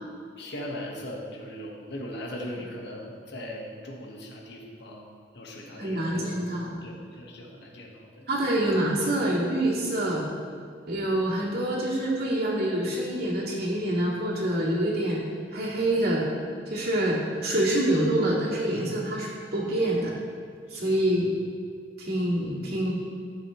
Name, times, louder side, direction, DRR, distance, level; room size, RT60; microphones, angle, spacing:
voice 1, 0.4-5.1 5.3-6.4 6.8-8.3 20.7-21.0, equal, 60° left, 0 dB, 1.3 m, -39 dB
voice 2, 5.8-6.8 8.3-10.2 10.9-15.2 15.5-16.2 16.7-20.1 20.7-21.3 22.0-22.9, right 1 dB, 55° right, -5 dB, 2.2 m, -26 dB
13.0 x 7.2 x 3.1 m, 2.1 s
head